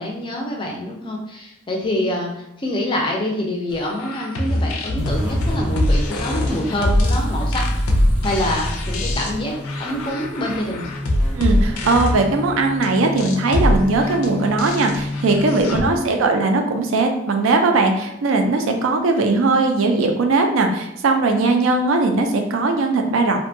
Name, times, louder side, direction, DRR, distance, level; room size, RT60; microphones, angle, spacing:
voice 1, 0.0-10.9 15.7-16.3, left 1 dB, 25° left, -1 dB, 0.4 m, -26 dB
sound 1, 3.8-15.8, left 1 dB, 85° left, 0.4 m, -23 dB
sound 2, 5.0-15.9, left 1 dB, 10° right, 0.7 m, -28 dB
voice 2, 11.3-23.4, right 3 dB, 70° right, 4 dB, 0.4 m, -19 dB
2.6 x 2.2 x 2.6 m, 0.80 s
head